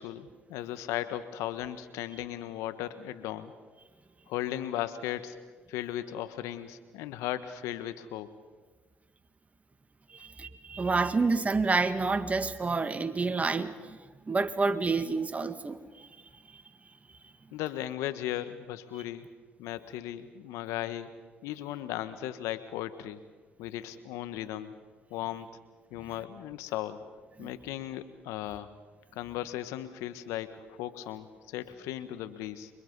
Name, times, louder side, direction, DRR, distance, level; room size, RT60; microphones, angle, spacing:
voice 1, 0.0-3.5 4.3-5.4 5.7-8.3 17.5-19.3 19.6-21.1 21.4-23.2 23.6-24.8 25.1-25.5 25.9-27.0 27.4-28.7 29.1-32.7, left 13 dB, 80° left, 11 dB, 1.5 m, -36 dB
voice 2, 10.1-14.0 14.3-16.1 16.5-16.6 27.4-27.5, right 4 dB, 30° right, 10 dB, 1.9 m, -29 dB
29.0 x 24.0 x 5.5 m, 1.4 s
hypercardioid pair, 55°, 5 cm